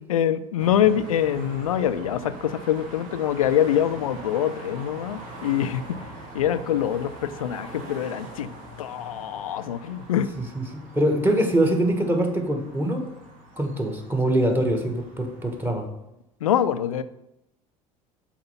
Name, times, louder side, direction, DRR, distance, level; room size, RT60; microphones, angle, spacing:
voice 1, 0.1-6.0 6.3-8.5 8.8-10.3 16.4-17.0, left 10 dB, 85° left, 14 dB, 0.4 m, -24 dB
sound 1, 0.6-15.7, right 1 dB, 50° right, 1.7 m, -42 dB
voice 2, 10.4-10.7 10.9-13.0 13.6-15.9, right 1 dB, 10° right, 3 dB, 1.5 m, -23 dB
5.7 x 4.4 x 5.6 m, 0.87 s
hypercardioid pair, 70°, 18 cm